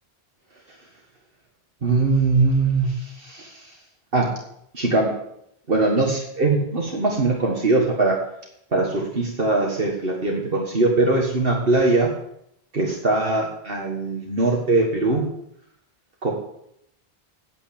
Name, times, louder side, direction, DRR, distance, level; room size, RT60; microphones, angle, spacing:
voice 1, 1.8-3.7 4.1-4.3 4.7-5.1 5.7-8.2 8.7-12.1 12.7-15.2 16.2-16.3, right 3 dB, 65° right, -1 dB, 2.0 m, -21 dB
9.2 x 8.9 x 8.7 m, 0.75 s
omnidirectional pair, 1.0 m